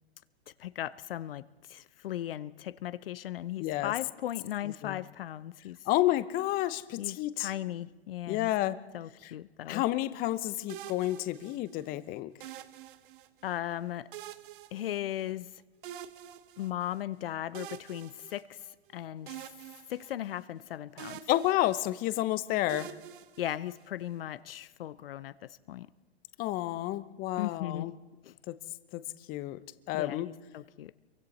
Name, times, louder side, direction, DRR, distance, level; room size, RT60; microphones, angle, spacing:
voice 1, 0.6-5.9 7.0-8.5 8.9-9.8 13.4-14.1 14.7-15.5 16.6-19.4 19.9-21.2 23.4-25.9 27.4-27.9 28.2-28.3 29.9-30.9, left 12 dB, 60° left, 0.6 m, -37 dB
voice 2, 3.6-3.9 4.8-5.0 5.9-7.5 8.3-8.8 9.7-12.3 21.3-22.9 26.4-27.9 28.5-28.6 28.9-29.0 29.3-29.6 29.9-30.3, left 15 dB, 30° left, 0.7 m, -30 dB
sound 1, 10.7-11.9 12.4-13.5 14.1-15.5 15.8-17.0 17.5-18.9 19.3-20.7 21.0-22.2 22.7-24.1, right 11 dB, 55° right, 1.0 m, -47 dB
27.0 x 23.5 x 4.2 m
hypercardioid pair, 115°, 32 cm